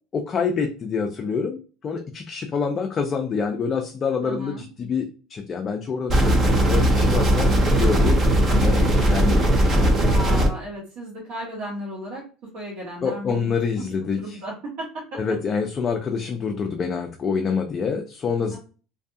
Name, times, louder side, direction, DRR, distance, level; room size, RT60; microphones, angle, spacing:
voice 1, 0.1-8.2 8.5-9.9 13.0-14.4 15.1-18.6, left 5 dB, 25° left, 4 dB, 0.3 m, -27 dB
voice 2, 4.2-4.6 10.0-12.2 12.5-13.8 14.2-15.0 18.5-18.6, right 1 dB, 60° right, -5 dB, 1.1 m, -34 dB
sound 1, 6.1-10.5, right 1 dB, 25° right, 0.5 m, -18 dB
2.5 x 2.3 x 2.6 m, 0.36 s
cardioid pair, 150°, 0 cm